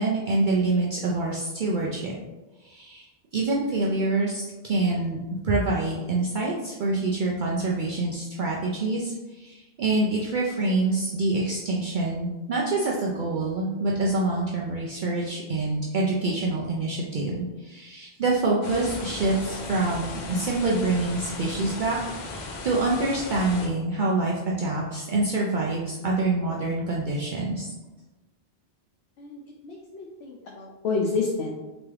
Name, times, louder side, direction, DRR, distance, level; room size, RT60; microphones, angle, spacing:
voice 1, 0.0-2.2 2.6-5.2 5.4-22.0 22.3-27.7, right 2 dB, 60° right, -3 dB, 0.6 m, -26 dB
sound 1, 18.6-23.7, left 2 dB, 55° left, 0.6 m, -36 dB
voice 2, 29.2-31.5, left 4 dB, 80° left, -1 dB, 0.8 m, -29 dB
3.4 x 3.0 x 3.2 m, 1.1 s
omnidirectional pair, 1.1 m